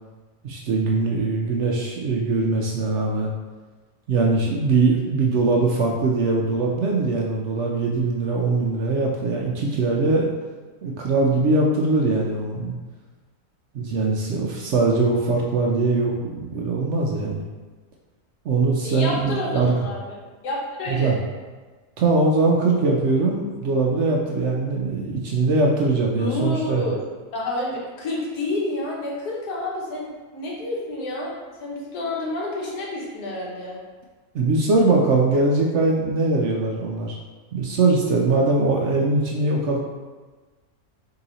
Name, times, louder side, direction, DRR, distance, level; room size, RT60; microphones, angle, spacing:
voice 1, 0.4-3.3 4.1-10.3 10.8-12.7 13.7-17.4 18.4-19.7 20.9-21.2 22.0-26.8 34.3-37.2 37.5-39.8, right 3 dB, 70° right, -1 dB, 0.7 m, -21 dB
voice 2, 18.8-20.2 20.4-21.1 26.1-27.0 27.3-31.3 31.6-33.8, left 2 dB, 90° left, -4 dB, 1.6 m, -29 dB
3.9 x 2.9 x 3.9 m, 1.3 s
omnidirectional pair, 1.6 m